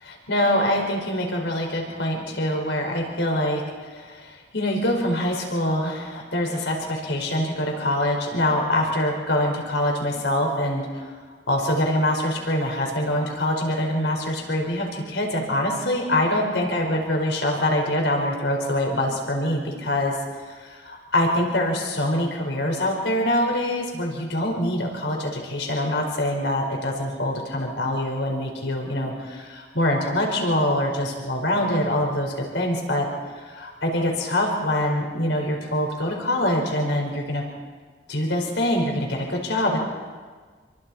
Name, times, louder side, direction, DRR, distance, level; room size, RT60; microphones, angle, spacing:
voice 1, 0.1-11.1 11.5-20.2 20.5-33.1 33.3-37.4 38.1-39.8, left 1 dB, 80° left, 1 dB, 5.0 m, -24 dB
27.5 x 23.5 x 4.4 m, 1.5 s
head